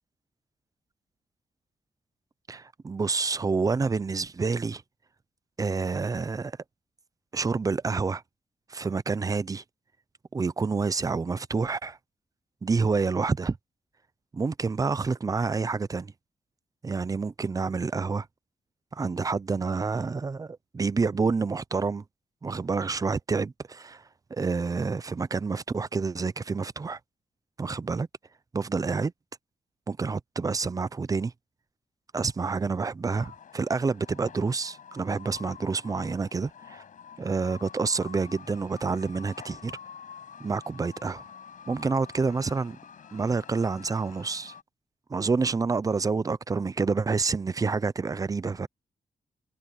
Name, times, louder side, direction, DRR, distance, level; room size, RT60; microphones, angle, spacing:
voice 1, 2.5-4.8 5.6-6.6 7.3-8.2 8.7-9.6 10.3-12.0 12.6-13.6 14.3-16.1 16.8-18.3 18.9-22.0 22.4-24.0 24.3-27.0 27.6-28.1 28.5-29.1 29.9-31.3 32.1-36.8 37.2-39.8 40.4-41.3 41.7-42.8 43.1-44.5 45.1-48.7, right 4 dB, 25° right, 0.6 m, -28 dB
sound 1, 33.1-44.6, left 7 dB, 70° left, 5.2 m, -48 dB
wide cardioid pair, 130°, 14 cm